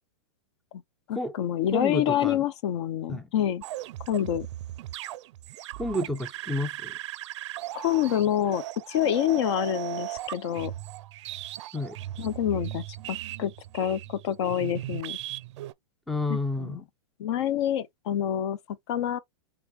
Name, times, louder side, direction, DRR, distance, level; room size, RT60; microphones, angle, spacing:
voice 1, 1.1-3.6 4.1-4.5 7.7-10.7 12.2-15.2 16.3-16.8 17.2-19.2, left 10 dB, 55° left, 0.6 m, -27 dB
voice 2, 1.7-2.4 3.1-3.3 5.8-7.0 11.7-12.0 16.1-16.9, left 2 dB, ahead, 0.4 m, -30 dB
sound 1, 3.6-15.7, right 14 dB, 60° right, 0.4 m, -38 dB
3.4 x 2.9 x 3.3 m
hypercardioid pair, 130°, 17 cm